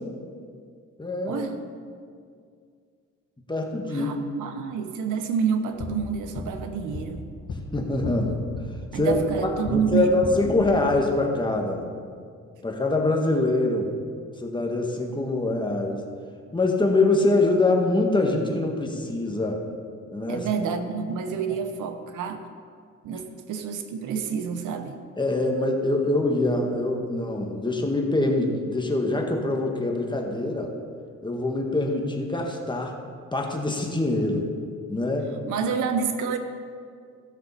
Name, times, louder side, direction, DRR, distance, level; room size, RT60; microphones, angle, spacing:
voice 1, 1.0-1.5 3.5-4.1 7.7-8.4 8.9-9.2 9.6-11.8 12.6-13.9 14.4-16.0 16.5-19.6 20.1-20.5 25.2-30.7 31.2-32.9 33.3-34.5 34.9-35.3, left 2 dB, 15° left, 1 dB, 1.6 m, -24 dB
voice 2, 3.9-7.2 8.9-10.6 20.3-22.4 23.0-23.2 23.5-24.9 35.5-36.4, right 6 dB, 85° right, 7 dB, 1.0 m, -28 dB
sound 1, 5.6-9.8 10.1-11.0, left 3 dB, 75° left, 1.8 m, -36 dB
16.0 x 6.2 x 4.3 m, 2.2 s
cardioid pair, 90°, 30 cm